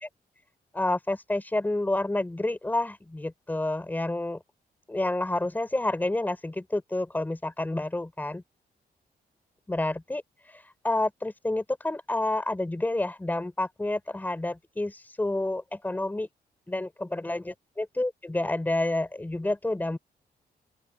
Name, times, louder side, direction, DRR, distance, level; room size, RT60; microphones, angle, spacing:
voice 1, 0.7-4.4 4.9-8.4 9.7-16.3 16.7-20.0, left 2 dB, 10° left, 5.5 m, -29 dB
open air
wide cardioid pair, 170°, 17 cm